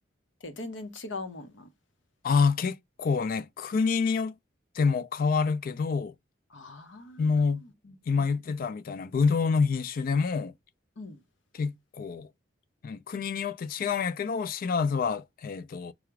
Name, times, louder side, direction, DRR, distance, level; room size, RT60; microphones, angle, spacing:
voice 1, 0.4-1.7 6.5-7.6 7.8-8.6 11.0-11.2, left 3 dB, 70° left, 0.7 m, -42 dB
voice 2, 2.2-4.3 4.7-6.1 7.2-7.6 8.1-10.5 11.5-12.3 12.8-15.9, left 5 dB, 50° left, 0.3 m, -27 dB
4.8 x 2.0 x 4.5 m
head